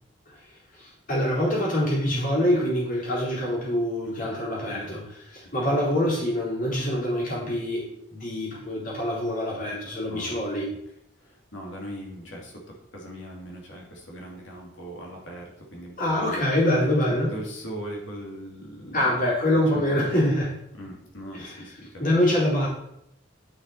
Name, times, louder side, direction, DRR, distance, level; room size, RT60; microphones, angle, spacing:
voice 1, 0.7-10.7 16.0-17.3 18.9-20.5 21.3-21.6 22.0-22.7, left 1 dB, 45° left, -4 dB, 3.9 m, -25 dB
voice 2, 4.0-4.4 10.1-10.4 11.2-16.4 17.1-19.2 19.7-20.0 20.7-22.2, right 1 dB, 75° left, -1 dB, 2.8 m, -40 dB
9.7 x 6.3 x 4.2 m, 0.76 s
head